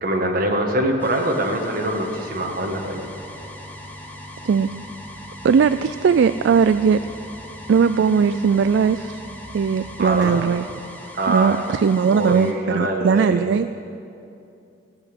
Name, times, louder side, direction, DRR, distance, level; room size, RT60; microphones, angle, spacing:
voice 1, 0.0-3.0 10.0-10.4 11.1-11.6 12.1-13.5, right 1 dB, 50° right, 2 dB, 1.6 m, -23 dB
sound 1, 1.0-12.5, left 1 dB, 10° left, 1.1 m, -41 dB
sound 2, 1.8-10.8, left 1 dB, 55° left, 3.9 m, -43 dB
voice 2, 5.4-7.0 7.7-9.2 9.5-10.6 11.3-13.7, right 6 dB, 70° right, 12 dB, 0.3 m, -18 dB
15.0 x 8.1 x 8.2 m, 2.7 s
head